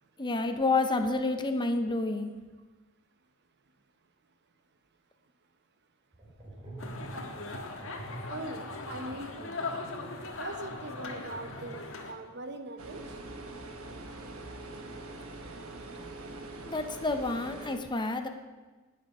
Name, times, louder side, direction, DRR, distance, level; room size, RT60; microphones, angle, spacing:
voice 1, 0.2-2.3 16.6-18.3, left 3 dB, 20° left, 6 dB, 0.8 m, -29 dB
sound 1, 6.1-12.2, right 1 dB, 25° right, 3.9 m, -46 dB
sound 2, 6.8-12.1, left 3 dB, 70° left, 1.6 m, -39 dB
voice 2, 8.3-8.6 8.9-9.5 10.4-11.8 12.1-13.0, right 2 dB, 55° right, 8 dB, 1.0 m, -40 dB
sound 3, 12.8-17.8, right 2 dB, 80° right, 1.3 m, -43 dB
18.5 x 6.8 x 5.5 m, 1.3 s
head